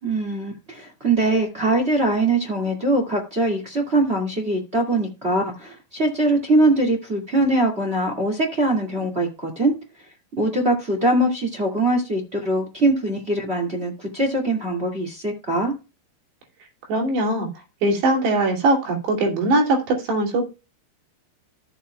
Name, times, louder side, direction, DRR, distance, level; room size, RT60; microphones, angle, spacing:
voice 1, 0.0-9.7 10.4-15.7, right 2 dB, 25° right, 2 dB, 1.3 m, -22 dB
voice 2, 16.9-17.5 17.8-20.4, right 2 dB, 80° right, 0 dB, 4.9 m, -21 dB
15.0 x 7.1 x 2.3 m, 0.29 s
omnidirectional pair, 4.9 m